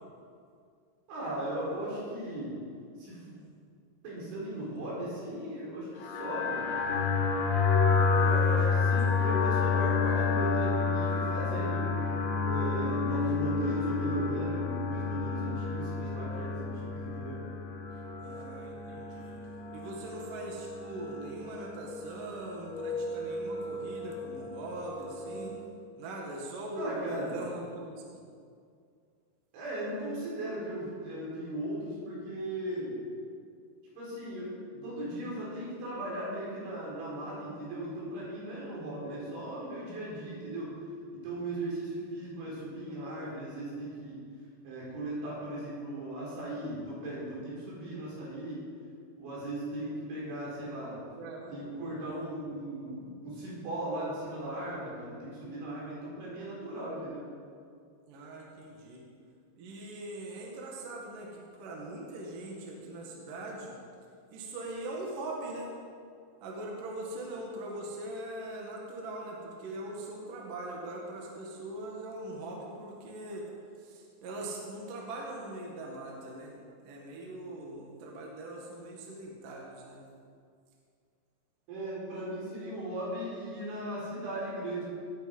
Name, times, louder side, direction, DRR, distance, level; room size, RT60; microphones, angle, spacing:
voice 1, 1.1-2.6 3.0-3.4 4.0-6.7 8.2-11.9 12.4-17.4 26.8-27.4 29.5-33.0 34.0-34.5 34.8-40.7 41.1-44.2 44.6-48.6 49.2-51.0 51.5-57.2 81.7-84.8, right 1 dB, 85° right, -6 dB, 6.8 m, -37 dB
sound 1, 6.0-25.7, left 4 dB, 65° left, 3.2 m, -30 dB
voice 2, 7.9-9.0 18.2-19.4 19.7-25.6 26.0-28.2 34.7-35.0 39.0-39.3 51.2-51.9 58.1-59.0 59.6-63.7 64.3-65.7 66.4-73.5 73.8-76.6 76.8-80.0, right 1 dB, 55° right, -1 dB, 3.0 m, -41 dB
19.5 x 9.0 x 5.4 m, 2.3 s
omnidirectional pair, 5.3 m